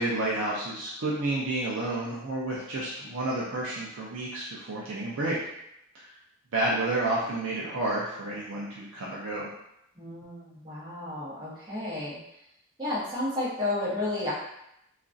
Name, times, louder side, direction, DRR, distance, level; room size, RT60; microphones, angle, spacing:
voice 1, 0.0-5.4 5.9-6.1 6.5-9.5, right 2 dB, 60° right, -5 dB, 0.4 m, -30 dB
voice 2, 9.9-12.2 12.8-14.3, left 2 dB, 20° right, -10 dB, 1.1 m, -32 dB
2.9 x 2.4 x 2.5 m, 0.80 s
head